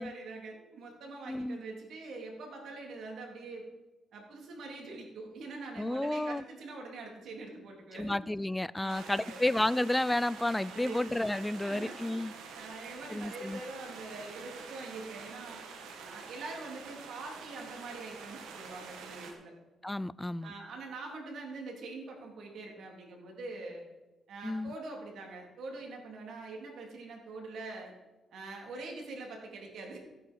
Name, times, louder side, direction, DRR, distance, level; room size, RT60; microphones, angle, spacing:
voice 1, 0.0-3.7 4.1-8.1 8.8-9.4 10.7-10.9 11.5-15.6 16.0-19.5 20.4-23.8 24.3-27.9 28.3-30.0, right 3 dB, 70° right, 3.6 m, -44 dB
voice 2, 1.3-1.6 5.8-6.4 7.9-12.3 13.1-13.6 19.8-20.5 24.4-24.7, left 1 dB, 10° left, 0.3 m, -31 dB
sound 1, 8.9-19.3, right 5 dB, 90° right, 2.0 m, -47 dB
15.0 x 8.8 x 4.7 m
cardioid pair, 90°, 0 cm